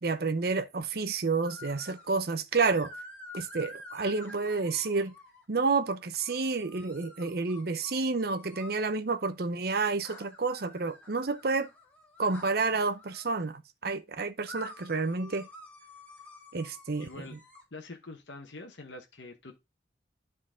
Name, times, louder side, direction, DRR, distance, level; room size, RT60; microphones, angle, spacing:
voice 1, 0.0-2.9 3.3-5.1 5.5-11.7 12.2-15.5 16.5-17.2, right 4 dB, 55° right, 0.7 m, -30 dB
sound 1, 1.4-2.1 2.7-5.4 6.2-8.8 10.0-13.5 14.4-17.6, left 2 dB, 5° left, 2.0 m, -49 dB
voice 2, 17.0-17.4 17.7-19.6, left 2 dB, 75° left, 1.1 m, -45 dB
11.5 x 4.0 x 3.7 m
head